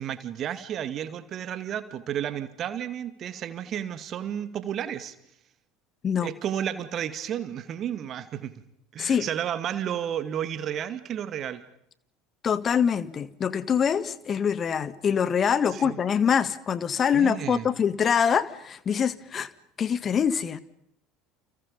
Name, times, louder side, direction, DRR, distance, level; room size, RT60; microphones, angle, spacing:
voice 1, 0.0-5.1 6.2-8.6 8.9-11.6 15.7-16.0 17.1-17.7, right 9 dB, 40° right, 2.2 m, -32 dB
voice 2, 12.4-19.5 19.8-20.6, left 7 dB, 30° left, 1.6 m, -24 dB
30.0 x 29.5 x 5.4 m
figure-of-eight pair, 65°, 0 cm